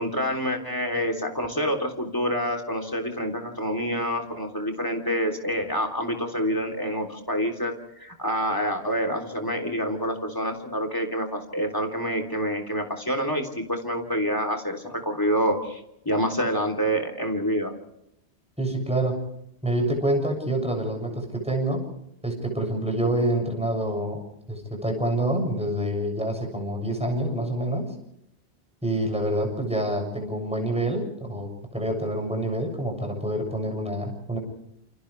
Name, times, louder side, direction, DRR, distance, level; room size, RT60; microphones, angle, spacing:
voice 1, 0.0-17.7, equal, 20° left, 5 dB, 3.6 m, -27 dB
voice 2, 18.6-19.2 19.6-21.9 22.2-24.2 24.5-27.9 28.8-34.4, right 1 dB, 5° right, 3 dB, 7.2 m, -27 dB
29.5 x 29.0 x 3.4 m, 0.79 s
omnidirectional pair, 1.1 m